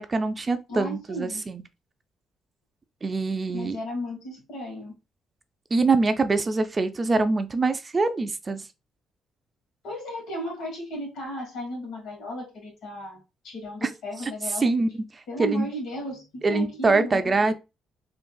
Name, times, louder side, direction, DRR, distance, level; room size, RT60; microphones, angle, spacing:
voice 1, 0.0-1.6 3.0-3.8 5.7-8.6 13.8-13.9 14.6-14.9 15.4-15.7 16.4-17.5, right 3 dB, 30° right, 0.4 m, -24 dB
voice 2, 0.7-1.5 3.5-4.9 9.8-13.2 13.4-14.7 15.3-17.5, equal, 80° left, 1.4 m, -35 dB
3.7 x 2.5 x 2.2 m
cardioid pair, 90°, 0 cm